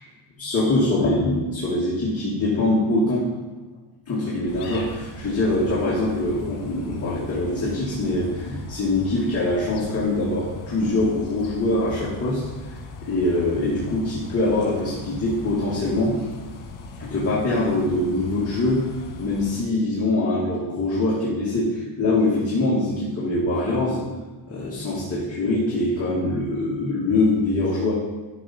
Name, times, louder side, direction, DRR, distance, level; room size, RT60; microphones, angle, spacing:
voice 1, 0.4-3.3 4.1-12.4 13.0-16.2 17.0-18.9 19.2-24.0 24.5-27.9, left 2 dB, 30° left, -7 dB, 2.0 m, -23 dB
sound 1, 4.5-19.6, left 3 dB, 75° left, 1.8 m, -39 dB
12.0 x 6.7 x 4.3 m, 1.3 s
cardioid pair, 140°, 48 cm